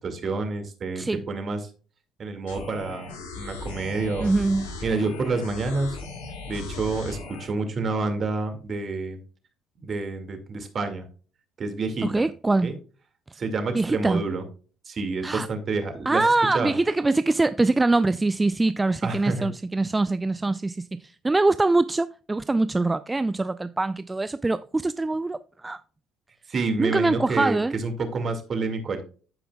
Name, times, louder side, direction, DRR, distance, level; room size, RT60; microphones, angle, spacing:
voice 1, 0.0-1.6 2.2-3.1 3.4-4.3 4.8-6.0 6.5-9.2 9.8-11.1 11.6-12.2 12.6-12.7 13.4-14.4 14.9-16.2 16.5-16.7 19.0-19.5 26.5-29.0, right 3 dB, 45° right, 2.0 m, -28 dB
sound 1, 2.5-7.5, left 3 dB, 90° left, 2.9 m, -37 dB
voice 2, 4.2-4.7 12.0-12.8 13.7-14.2 15.2-15.5 16.1-25.8 26.8-27.7, right 2 dB, 20° right, 0.3 m, -23 dB
14.5 x 5.1 x 2.3 m
supercardioid pair, 70°, 0 cm